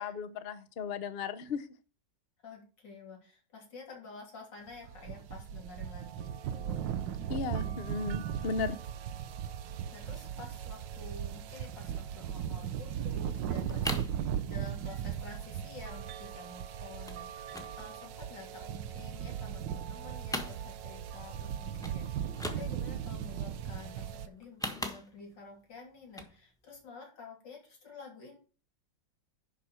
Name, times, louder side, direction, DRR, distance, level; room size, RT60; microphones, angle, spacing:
voice 1, 0.0-1.6 7.3-8.8, left 5 dB, 50° left, 11 dB, 0.8 m, -35 dB
voice 2, 2.4-6.9 7.2-7.3 7.6-7.7 9.9-28.4, left 3 dB, 80° left, -1 dB, 3.6 m, -50 dB
sound 1, 4.7-24.3, right 9 dB, 90° right, 1.4 m, -38 dB
sound 2, 13.6-14.2 14.5-14.9 15.2-15.3 15.5-15.8 16.1-16.6 17.0-17.2 17.5-18.8 19.1-19.9 20.2-21.1 21.4-21.5 21.8-22.0 22.3-23.0 24.3-25.4 26.0-26.4 26.7-26.8, equal, ahead, 1.0 m, -40 dB
11.0 x 4.3 x 6.3 m, 0.38 s
omnidirectional pair, 1.9 m